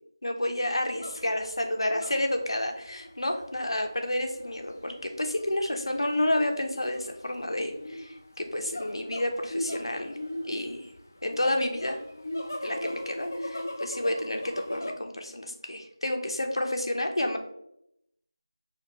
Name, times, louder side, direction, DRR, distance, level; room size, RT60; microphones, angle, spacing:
voice 1, 0.2-10.1 10.4-10.8 11.2-12.0 12.6-17.4, left 1 dB, 85° left, 4 dB, 0.7 m, -30 dB
sound 1, 0.9-14.9, left 1 dB, 35° left, 0.3 m, -39 dB
5.1 x 2.5 x 2.9 m, 0.77 s
figure-of-eight pair, 180°, 3 cm